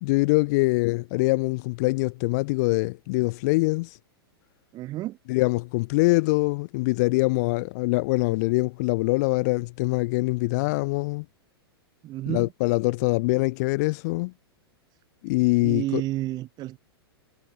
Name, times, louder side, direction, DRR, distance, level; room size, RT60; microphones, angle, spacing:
voice 1, 0.0-4.0 5.3-11.2 12.3-14.3 15.2-16.0, left 24 dB, 40° left, 0.8 m, -24 dB
voice 2, 4.7-5.2 12.0-12.5 15.6-16.8, right 16 dB, 30° right, 3.5 m, -31 dB
figure-of-eight pair, 100°, 13 cm